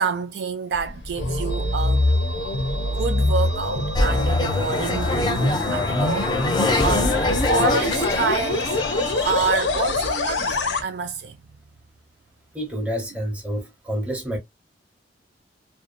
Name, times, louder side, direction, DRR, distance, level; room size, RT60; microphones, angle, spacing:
voice 1, 0.0-2.1 2.3-2.4 2.9-6.6 6.8-7.2 7.5-8.8 9.3-11.4, right 5 dB, 65° right, 0.4 m, -28 dB
sound 1, 0.7-10.8, left 2 dB, 80° left, 0.6 m, -24 dB
sound 2, 1.5-9.6, right 5 dB, 35° right, 0.8 m, -39 dB
sound 3, 4.0-10.1, left 2 dB, 25° left, 0.4 m, -25 dB
voice 2, 12.5-14.4, equal, 5° right, 0.8 m, -28 dB
2.6 x 2.1 x 2.4 m
head